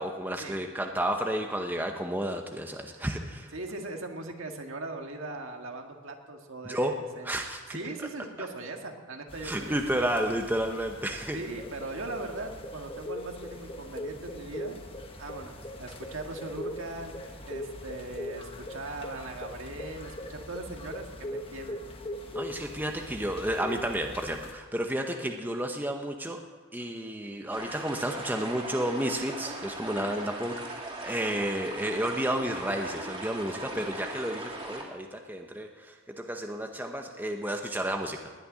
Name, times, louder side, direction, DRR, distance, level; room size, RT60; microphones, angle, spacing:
voice 1, 0.0-3.5 6.7-6.9 7.2-7.8 9.4-11.4 22.3-26.4 26.7-38.2, right 1 dB, 10° right, 3 dB, 1.0 m, -31 dB
voice 2, 3.5-7.3 7.7-9.8 11.3-14.8 15.2-21.8, right 2 dB, 65° right, 3 dB, 1.9 m, -40 dB
sound 1, 9.3-24.5, left 1 dB, 25° left, 1.4 m, -41 dB
sound 2, 27.5-34.8, right 1 dB, 25° right, 2.9 m, -39 dB
19.5 x 6.8 x 10.0 m, 1.4 s
head